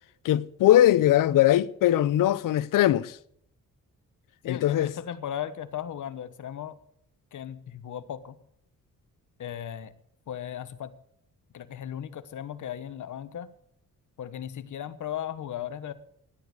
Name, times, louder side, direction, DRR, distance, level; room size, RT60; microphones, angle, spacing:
voice 1, 0.2-3.2 4.4-4.9, left 13 dB, 85° left, 0.7 m, -21 dB
voice 2, 4.4-6.8 7.3-8.4 9.4-9.9 10.3-10.9 11.5-13.5 14.2-15.9, left 10 dB, 70° left, 1.2 m, -36 dB
16.5 x 11.0 x 6.5 m
cardioid pair, 100°, 31 cm